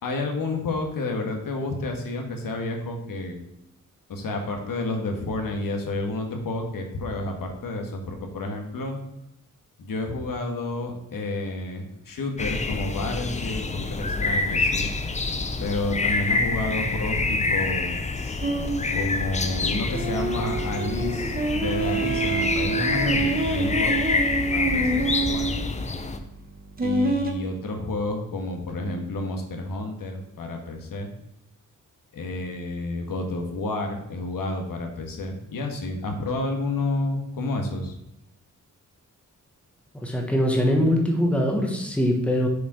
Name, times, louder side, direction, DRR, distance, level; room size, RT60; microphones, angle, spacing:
voice 1, 0.0-3.4 4.1-9.0 9.8-14.9 15.6-17.9 18.9-24.1 24.5-25.6 26.8-31.1 32.1-37.9, left 2 dB, 90° left, 3 dB, 1.4 m, -30 dB
sound 1, 12.4-26.2, left 3 dB, 20° left, 0.5 m, -27 dB
sound 2, 18.4-27.3, right 3 dB, 25° right, 0.9 m, -27 dB
voice 2, 40.0-42.5, equal, 5° left, 1 dB, 1.0 m, -22 dB
6.8 x 4.9 x 4.8 m, 0.84 s
wide cardioid pair, 180°, 32 cm